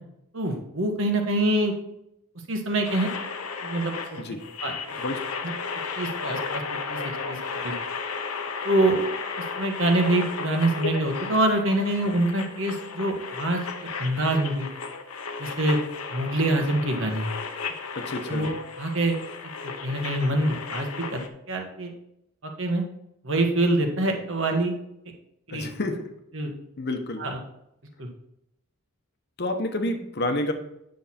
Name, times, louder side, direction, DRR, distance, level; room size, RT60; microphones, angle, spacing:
voice 1, 0.3-1.7 2.5-3.1 3.6-3.9 4.6-4.7 5.4-5.5 6.0-7.4 7.6-7.7 8.6-9.0 9.6-14.7 15.4-15.8 16.1-17.3 18.3-18.5 18.8-19.2 19.8-21.2 21.5-21.9 22.4-22.8 23.2-24.8 25.5-25.7 26.3-26.5 27.2-27.4 28.0-28.1, right 1 dB, 60° right, 3 dB, 1.5 m, -25 dB
sound 1, 2.8-21.3, left 5 dB, 85° left, 1.0 m, -34 dB
voice 2, 17.9-18.5 25.5-26.1 26.8-27.2 29.4-30.5, left 1 dB, 50° left, 6 dB, 1.0 m, -29 dB
9.2 x 6.4 x 4.3 m, 0.82 s
head